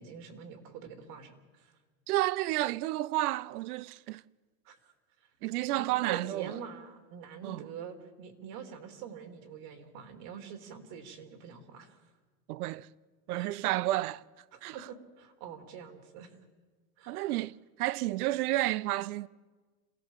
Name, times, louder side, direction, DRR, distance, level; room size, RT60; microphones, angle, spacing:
voice 1, 0.0-1.7 4.7-4.9 5.7-12.0 13.3-13.7 14.5-16.3 17.0-17.4, right 8 dB, 60° right, 3.5 m, -45 dB
voice 2, 2.1-4.2 5.4-6.6 7.4-7.6 12.5-12.9 13.3-14.2 14.6-14.7 17.1-19.3, right 16 dB, 85° right, 0.7 m, -31 dB
27.0 x 17.0 x 7.4 m
supercardioid pair, 135°, 44 cm